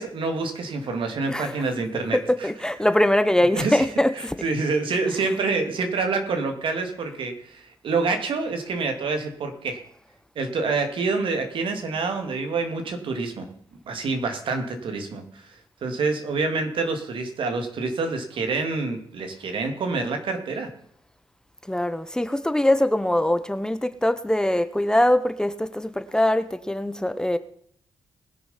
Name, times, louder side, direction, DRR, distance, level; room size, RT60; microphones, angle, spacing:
voice 1, 0.0-2.5 3.5-3.9 4.1-9.8 10.4-13.5 13.9-20.7, right 4 dB, 70° right, 2.6 m, -27 dB
voice 2, 2.1-4.3 21.7-27.4, left 1 dB, 10° left, 0.8 m, -22 dB
20.0 x 6.9 x 5.7 m
cardioid pair, 90°, 9 cm